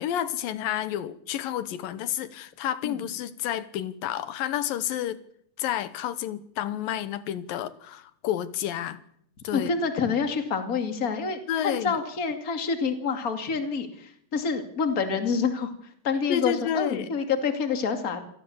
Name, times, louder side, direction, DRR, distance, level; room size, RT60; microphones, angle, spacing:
voice 1, 0.0-5.2 5.6-9.0 9.4-9.7 11.5-12.0 16.3-17.1, left 11 dB, 85° left, 2.8 m, -30 dB
voice 2, 9.5-18.2, left 5 dB, 30° left, 2.4 m, -27 dB
27.0 x 18.5 x 7.2 m
omnidirectional pair, 4.0 m